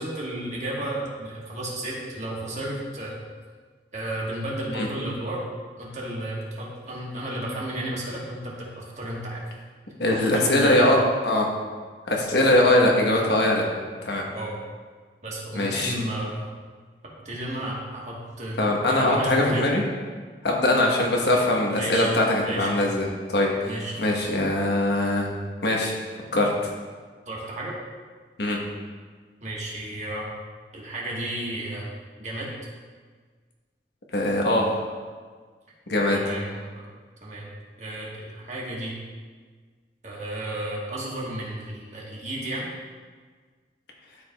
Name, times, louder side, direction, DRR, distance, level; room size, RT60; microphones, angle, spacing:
voice 1, 0.0-3.2 3.9-5.4 5.8-9.4 10.1-10.9 12.4-12.6 14.3-14.5 15.2-16.5 17.2-19.7 21.7-22.1 22.5-22.8 23.6-24.3 27.3-27.8 29.4-30.3 30.7-31.9 32.2-32.5 36.1-36.9 37.2-37.5 37.8-38.9 40.0-42.7, right 1 dB, 40° right, -4 dB, 1.5 m, -33 dB
voice 2, 10.0-11.5 12.1-13.6 14.0-14.2 15.5-15.9 18.6-19.8 20.4-23.7 24.0-25.3 25.6-26.0 26.3-26.7 28.4-28.6 34.1-34.8 35.9-36.2, left 1 dB, 75° left, -1 dB, 1.3 m, -21 dB
12.5 x 4.9 x 2.4 m, 1.5 s
head